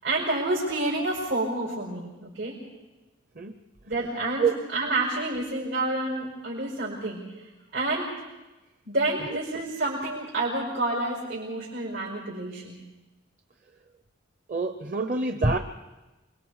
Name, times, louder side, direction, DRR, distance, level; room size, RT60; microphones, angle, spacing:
voice 1, 0.0-2.5 3.9-7.2 7.7-8.1 8.9-12.8, right 2 dB, 90° right, -5 dB, 5.2 m, -29 dB
voice 2, 14.5-15.6, right 3 dB, 40° right, 7 dB, 0.7 m, -25 dB
27.5 x 22.5 x 4.8 m, 1.1 s
head